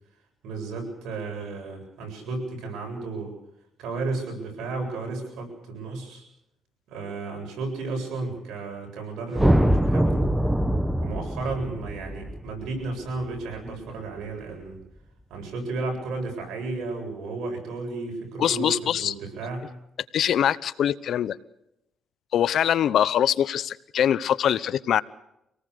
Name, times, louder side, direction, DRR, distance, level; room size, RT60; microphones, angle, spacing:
voice 1, 0.4-3.3 3.8-6.2 6.9-10.3 11.0-14.8 15.3-19.7, right 3 dB, 85° right, 2 dB, 7.8 m, -33 dB
sound 1, 9.3-13.7, equal, 10° right, 1.3 m, -23 dB
voice 2, 18.4-19.1 20.1-21.4 22.3-25.0, left 10 dB, 70° left, 17 dB, 0.8 m, -23 dB
25.5 x 18.5 x 6.7 m, 0.83 s
cardioid pair, 90°, 0 cm